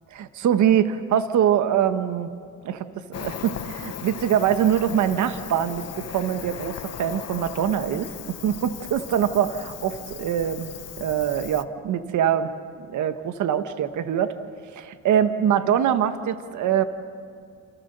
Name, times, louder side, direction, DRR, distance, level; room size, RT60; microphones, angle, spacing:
voice 1, 0.1-2.3 2.6-8.1 8.4-10.7 11.0-12.5 12.9-14.3 14.7-16.8, right 9 dB, 75° right, 10 dB, 1.3 m, -23 dB
Cricket, 3.1-11.6, left 9 dB, 55° left, 1.0 m, -37 dB
29.5 x 28.0 x 6.8 m, 2.3 s
cardioid pair, 90°, 30 cm